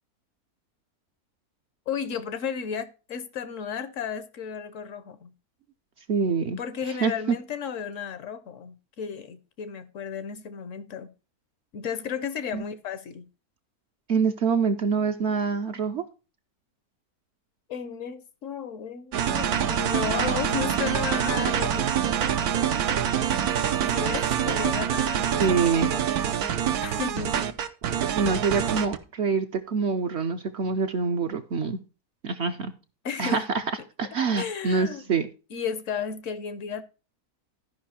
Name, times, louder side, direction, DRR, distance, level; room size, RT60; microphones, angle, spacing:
voice 1, 1.9-5.3 6.6-11.1 11.7-13.3 17.7-22.0 23.9-26.1 26.8-27.5 33.0-33.4 33.8-33.9 34.4-35.1 35.5-36.8, left 7 dB, 65° left, 1.0 m, -34 dB
voice 2, 6.1-6.6 7.0-7.4 12.5-12.6 14.1-16.0 25.4-25.9 28.0-31.8 32.2-32.7 33.2-33.4 34.0-35.3, right 5 dB, 60° right, 0.8 m, -25 dB
sound 1, 19.1-29.0, right 9 dB, 80° right, 1.3 m, -25 dB
12.5 x 5.3 x 4.2 m
omnidirectional pair, 1.6 m